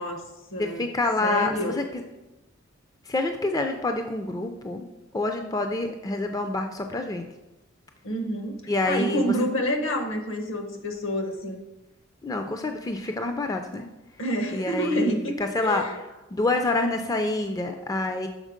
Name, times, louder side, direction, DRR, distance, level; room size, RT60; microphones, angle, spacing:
voice 1, 0.0-0.9 1.2-1.8 8.0-8.6 8.8-11.6 14.2-15.3 15.6-15.9, equal, 70° left, 4 dB, 1.0 m, -28 dB
voice 2, 0.6-1.8 3.1-4.8 5.1-7.3 8.7-9.2 12.2-13.9 14.5-16.0 16.3-18.3, left 2 dB, 15° left, 5 dB, 0.3 m, -27 dB
6.4 x 4.3 x 5.0 m, 1.0 s
head